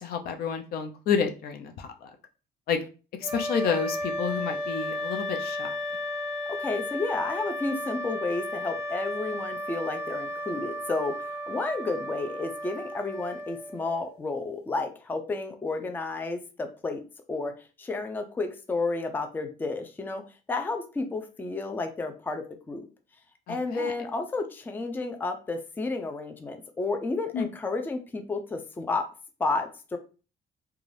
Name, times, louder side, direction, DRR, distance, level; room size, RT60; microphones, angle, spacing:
voice 1, 0.0-2.1 2.7-2.8 3.2-5.8 23.5-23.9 27.3-27.5, left 6 dB, 65° left, 5 dB, 0.5 m, -30 dB
sound 1, 3.2-14.2, left 1 dB, 10° right, 1.3 m, -34 dB
voice 2, 6.5-11.2 11.5-17.0 17.3-20.2 20.5-22.8 23.5-29.1 29.4-30.0, left 3 dB, 10° left, 6 dB, 0.4 m, -31 dB
2.5 x 2.3 x 3.1 m, 0.34 s
cardioid pair, 110°, 17 cm